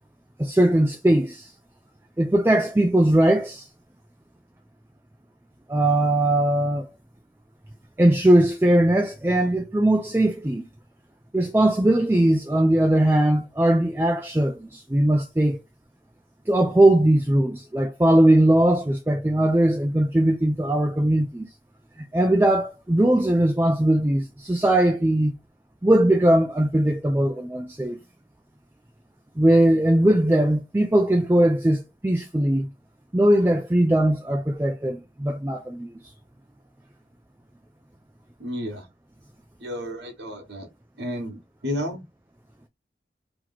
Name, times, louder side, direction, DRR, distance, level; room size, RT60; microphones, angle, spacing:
voice 1, 0.4-1.5 2.2-3.7 5.7-6.9 8.0-10.6 11.3-15.6 16.5-21.4 22.0-25.3 25.8-28.0 29.4-32.7 33.1-35.9, right 1 dB, 15° right, 0.4 m, -20 dB
voice 2, 38.4-38.8 39.6-40.7 41.0-42.0, equal, 80° right, 1.2 m, -32 dB
3.0 x 2.9 x 3.9 m
head